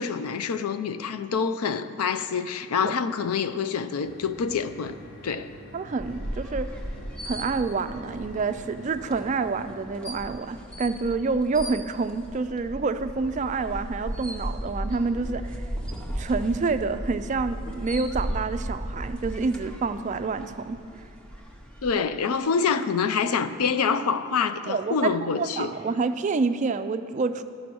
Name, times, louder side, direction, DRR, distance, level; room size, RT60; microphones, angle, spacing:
voice 1, 0.0-4.9 5.2-5.5 21.8-25.7, left 6 dB, 80° left, 0.5 m, -26 dB
sound 1, 4.0-9.5, right 1 dB, 50° left, 1.2 m, -46 dB
voice 2, 5.7-6.7 7.2-15.6 16.2-20.8 24.7-27.4, right 4 dB, 35° right, 0.3 m, -28 dB
sound 2, 6.0-21.9, equal, 5° left, 0.7 m, -36 dB
13.5 x 5.1 x 6.1 m
head